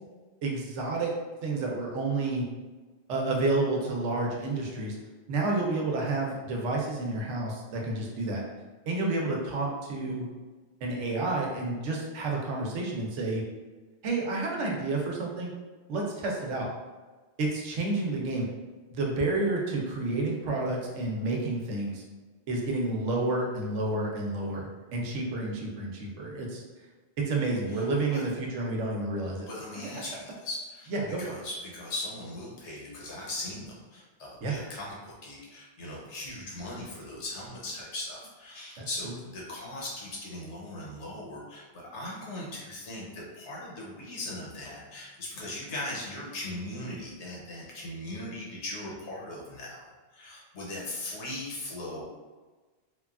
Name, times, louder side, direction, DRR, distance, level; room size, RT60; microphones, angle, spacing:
voice 1, 0.4-1.1 1.4-2.4 3.1-5.0 5.3-8.4 8.9-10.3 10.8-13.4 14.0-15.5 15.9-16.7 17.4-18.4 18.9-22.0 22.5-26.6 27.2-29.5 30.9-31.4 34.4-34.6 38.8-39.2, right 2 dB, 80° right, -1 dB, 0.9 m, -30 dB
voice 2, 29.5-30.9 31.2-49.9 50.1-52.0, left 1 dB, 75° left, -4 dB, 1.0 m, -39 dB
3.1 x 2.2 x 2.3 m, 1.3 s
omnidirectional pair, 1.2 m